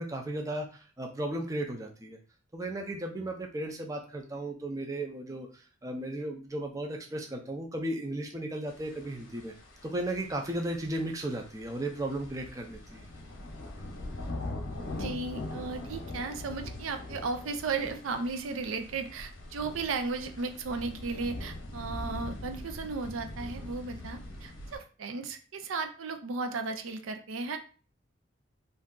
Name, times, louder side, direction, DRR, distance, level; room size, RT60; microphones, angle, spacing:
voice 1, 0.0-2.2 2.5-9.5 9.8-13.1, right 1 dB, 15° right, 2 dB, 0.4 m, -35 dB
sound 1, 8.7-24.8, left 2 dB, 75° left, 0.8 m, -42 dB
voice 2, 14.9-27.6, right 4 dB, 85° right, 7 dB, 0.5 m, -35 dB
2.6 x 2.3 x 3.6 m, 0.37 s
head